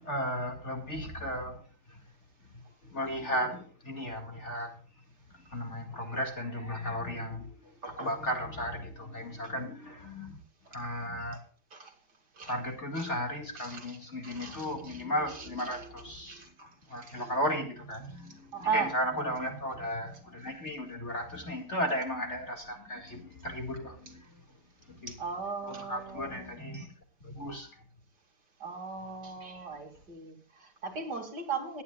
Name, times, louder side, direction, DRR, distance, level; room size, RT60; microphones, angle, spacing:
voice 1, 0.0-2.0 2.5-4.8 5.5-10.4 10.7-11.4 12.4-16.5 16.9-24.4 24.9-25.1 25.6-26.9 27.2-27.8, equal, 35° left, 2.3 m, -35 dB
voice 2, 13.6-14.0 14.2-15.0 16.3-16.7 17.0-17.2 18.5-18.9 25.1-26.5 28.6-31.8, right 5 dB, 50° right, 3.2 m, -37 dB
22.0 x 10.0 x 2.4 m
omnidirectional pair, 2.3 m